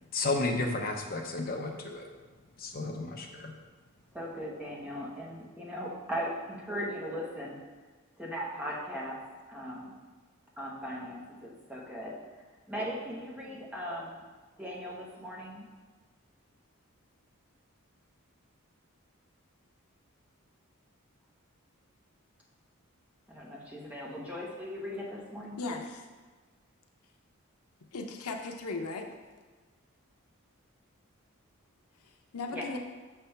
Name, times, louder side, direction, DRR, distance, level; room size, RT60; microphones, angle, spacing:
voice 1, 0.1-2.1 2.6-3.5, left 2 dB, 40° left, 2 dB, 0.7 m, -32 dB
voice 2, 4.1-7.6 8.2-9.2 9.5-9.9 10.6-12.1 12.7-14.2 14.6-15.7 23.3-25.8 32.5-32.7, equal, 5° right, -4 dB, 0.9 m, -38 dB
voice 3, 25.6-26.1 27.9-29.1 32.3-32.8, left 3 dB, 85° left, 4 dB, 0.7 m, -37 dB
6.7 x 3.4 x 5.6 m, 1.4 s
head